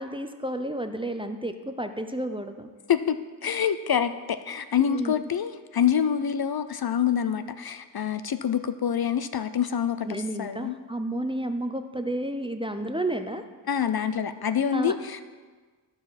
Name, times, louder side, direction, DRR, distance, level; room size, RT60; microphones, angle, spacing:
voice 1, 0.0-2.7 4.8-5.2 10.0-13.4 14.7-14.9, right 1 dB, 10° right, 7 dB, 0.6 m, -31 dB
voice 2, 2.9-10.1 10.4-10.8 13.7-15.2, left 8 dB, 55° left, 11 dB, 0.5 m, -26 dB
14.0 x 4.9 x 4.1 m, 1.4 s
wide cardioid pair, 40°, 44 cm